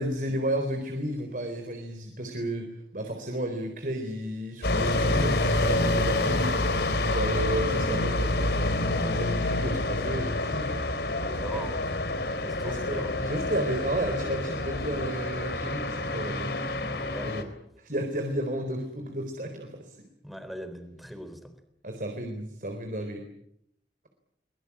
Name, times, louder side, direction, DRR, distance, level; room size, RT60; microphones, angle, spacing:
voice 1, 0.0-6.6 7.1-10.8 11.5-11.7 12.6-16.6 17.2-17.5 17.8-20.0 21.8-23.3, right 1 dB, 50° right, 5 dB, 4.1 m, -33 dB
sound 1, 4.6-17.4, left 2 dB, 65° left, 3.9 m, -27 dB
voice 2, 11.3-12.0 12.4-13.1 17.1-17.4 20.2-21.6, equal, ahead, 10 dB, 3.8 m, -41 dB
24.5 x 22.5 x 8.6 m, 0.74 s
head